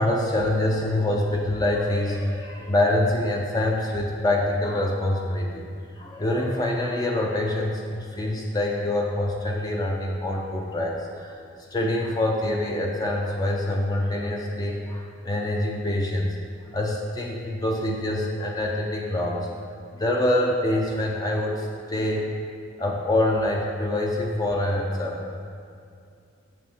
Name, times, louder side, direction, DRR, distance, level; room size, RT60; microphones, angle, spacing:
voice 1, 0.0-5.7 6.0-11.3 11.7-16.4 16.7-19.5 19.9-22.3 22.8-25.3, left 1 dB, 20° left, -1 dB, 0.5 m, -25 dB
7.0 x 5.9 x 3.5 m, 2.4 s
head